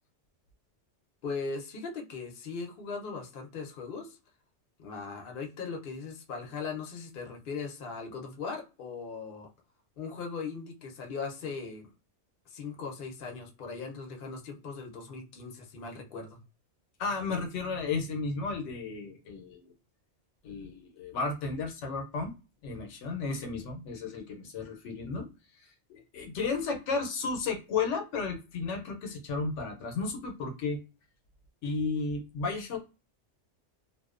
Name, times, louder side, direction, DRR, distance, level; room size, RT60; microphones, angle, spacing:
voice 1, 1.2-4.2 4.8-9.5 10.0-11.9 12.5-16.4, left 4 dB, 55° left, 1 dB, 0.8 m, -39 dB
voice 2, 17.0-19.7 20.4-22.3 22.6-25.3 25.6-30.8 31.6-32.8, left 4 dB, 85° left, 3 dB, 0.9 m, -33 dB
2.5 x 2.1 x 2.4 m, 0.31 s
omnidirectional pair, 1.2 m